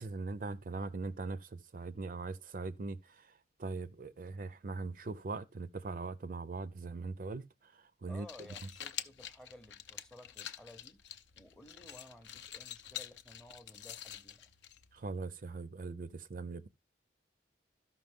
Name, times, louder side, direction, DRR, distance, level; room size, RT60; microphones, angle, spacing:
voice 1, 0.0-8.3 14.9-16.7, right 3 dB, 45° right, 0.4 m, -41 dB
sound 1, 8.1-15.1, left 10 dB, 75° left, 0.6 m, -47 dB
voice 2, 8.1-11.0 11.3-14.4, left 1 dB, 5° left, 0.7 m, -55 dB
13.0 x 5.9 x 3.5 m
head